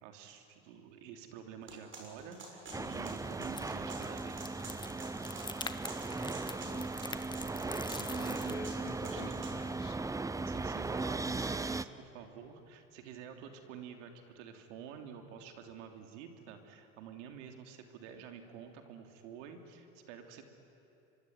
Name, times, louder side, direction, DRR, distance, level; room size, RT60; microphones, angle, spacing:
voice 1, 0.0-4.6 8.1-8.6 9.0-9.5 10.5-20.5, right 7 dB, 75° right, 5 dB, 3.2 m, -49 dB
sound 1, 1.7-9.6, right 3 dB, 30° right, 6.7 m, -49 dB
voice 2, 2.7-3.1 6.5-6.9 7.7-10.0, left 7 dB, 80° left, 4 dB, 3.4 m, -50 dB
sound 2, 2.7-11.8, right 3 dB, 10° right, 0.7 m, -37 dB
sound 3, 2.9-8.5, left 3 dB, 10° left, 1.2 m, -47 dB
25.0 x 23.5 x 9.6 m, 3.0 s
hypercardioid pair, 95°, 37 cm